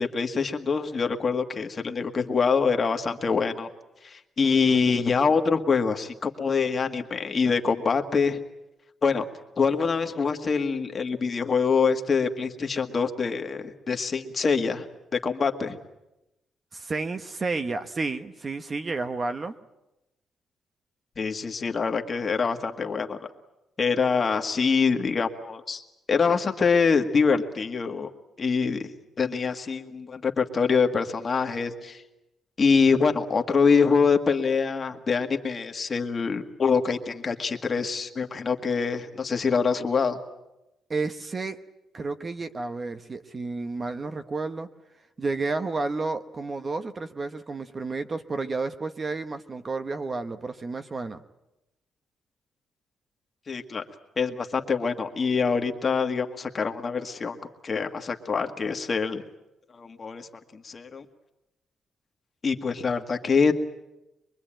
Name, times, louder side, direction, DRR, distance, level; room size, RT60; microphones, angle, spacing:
voice 1, 0.0-3.7 4.0-8.4 9.0-9.2 9.6-14.9 15.2-15.8 21.2-23.2 23.8-25.8 26.1-28.1 28.4-28.9 29.2-32.0 32.6-40.2 53.5-53.8 54.2-57.4 57.6-59.2 59.7-61.0 62.4-63.5, left 5 dB, 35° left, 5 dB, 1.8 m, -25 dB
voice 2, 16.7-19.5 40.9-41.6 41.9-44.7 45.2-51.2, right 3 dB, 25° right, 9 dB, 1.0 m, -31 dB
23.5 x 23.5 x 8.9 m, 0.93 s
cardioid pair, 145°, 0 cm